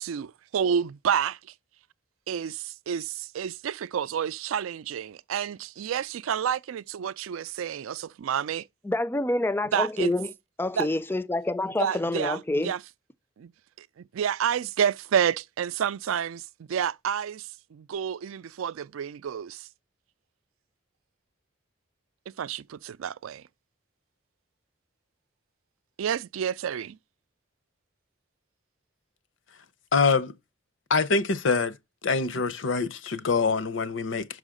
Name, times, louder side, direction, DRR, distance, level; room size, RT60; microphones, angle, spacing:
voice 1, 0.0-1.4 2.3-8.7 9.7-10.1 10.8-10.9 11.8-12.8 13.4-13.5 13.8-19.7 22.4-23.4 26.0-27.0, right 8 dB, 90° right, 0.4 m, -29 dB
voice 2, 8.9-10.3 10.6-12.7, left 2 dB, 10° left, 0.3 m, -27 dB
voice 3, 29.9-30.3 30.9-31.7 32.0-34.3, left 4 dB, 70° left, 0.7 m, -24 dB
6.2 x 4.9 x 4.9 m
head